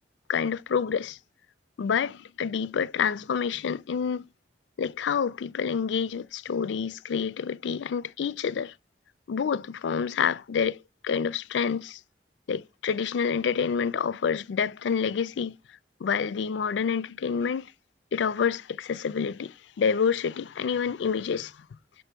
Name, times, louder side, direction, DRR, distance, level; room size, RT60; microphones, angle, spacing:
voice 1, 0.3-1.2 1.8-4.2 4.8-8.7 9.3-12.0 12.5-15.5 16.0-17.7 18.1-21.5, left 6 dB, 80° left, 0.4 m, -28 dB
6.2 x 3.4 x 5.9 m
head